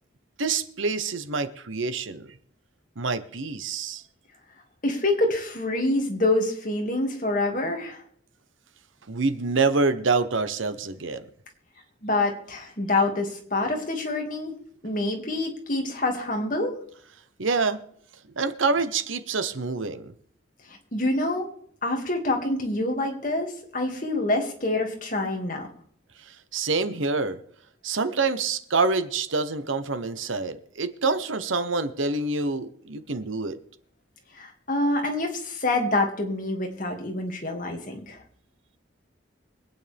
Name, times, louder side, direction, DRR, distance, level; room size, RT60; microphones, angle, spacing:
voice 1, 0.4-2.3 3.0-4.0 9.1-11.2 17.4-17.8 18.4-20.1 26.3-27.4 27.8-33.6, right 4 dB, 85° right, 11 dB, 1.1 m, -26 dB
voice 2, 4.8-8.0 12.0-14.5 14.8-16.8 20.9-21.5 21.8-25.7 34.4-38.2, left 2 dB, 40° left, 2 dB, 2.4 m, -26 dB
24.5 x 9.2 x 3.5 m, 0.63 s
head